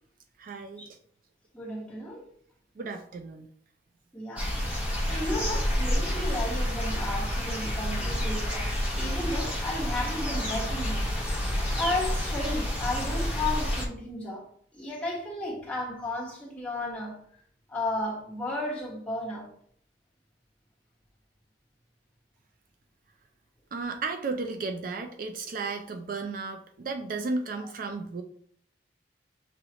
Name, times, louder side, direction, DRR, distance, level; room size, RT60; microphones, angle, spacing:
voice 1, 0.4-0.9 2.8-3.5 23.7-28.2, right 3 dB, 50° right, 0.4 m, -34 dB
voice 2, 1.5-2.3 4.1-11.0 11.5-14.4 14.7-17.2 17.7-19.5, left 1 dB, 10° left, 1.3 m, -34 dB
sound 1, 4.4-13.9, equal, 10° right, 0.9 m, -29 dB
6.3 x 2.9 x 2.9 m
head